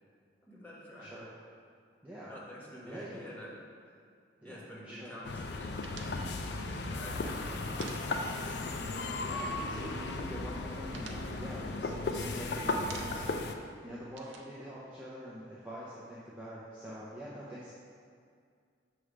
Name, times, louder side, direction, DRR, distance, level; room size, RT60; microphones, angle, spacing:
voice 1, 0.4-1.1 2.3-3.6 4.4-8.4, equal, 10° left, -7 dB, 1.1 m, -48 dB
voice 2, 2.9-3.3 4.4-5.1 9.1-17.7, equal, 10° right, -9 dB, 0.6 m, -45 dB
sound 1, 5.2-13.5, left 2 dB, 65° left, 0.4 m, -36 dB
sound 2, 5.8-8.6 8.9-9.1 9.4-10.0 10.4-12.4 12.7-13.4 13.7-15.5, right 4 dB, 90° right, 0.6 m, -51 dB
6.9 x 3.3 x 4.9 m, 2.2 s
head